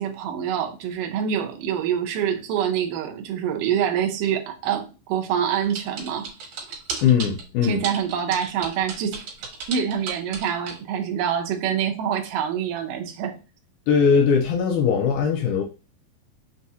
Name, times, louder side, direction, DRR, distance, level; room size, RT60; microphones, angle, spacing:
voice 1, 0.0-6.3 7.6-9.2 9.7-13.4, right 8 dB, 80° right, 1.9 m, -26 dB
sound 1, 5.7-7.4 7.8-10.8, right 5 dB, 65° right, 2.4 m, -33 dB
voice 2, 7.0-7.8 13.9-15.6, left 6 dB, 90° left, 1.8 m, -20 dB
6.1 x 2.4 x 2.7 m
omnidirectional pair, 4.4 m